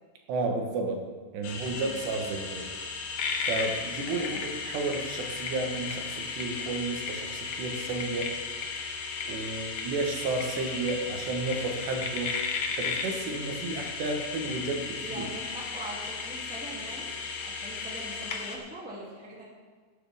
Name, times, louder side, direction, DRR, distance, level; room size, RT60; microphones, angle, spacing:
voice 1, 0.3-1.1 1.3-2.7 3.5-8.3 9.3-12.3 12.8-15.3, right 3 dB, 85° right, 2 dB, 3.5 m, -32 dB
sound 1, 1.4-18.6, left 5 dB, 85° left, 1.5 m, -35 dB
voice 2, 4.1-4.5 14.9-17.1 17.4-19.4, right 1 dB, 5° right, -4 dB, 1.3 m, -42 dB
18.0 x 9.4 x 3.5 m, 1.4 s
omnidirectional pair, 4.8 m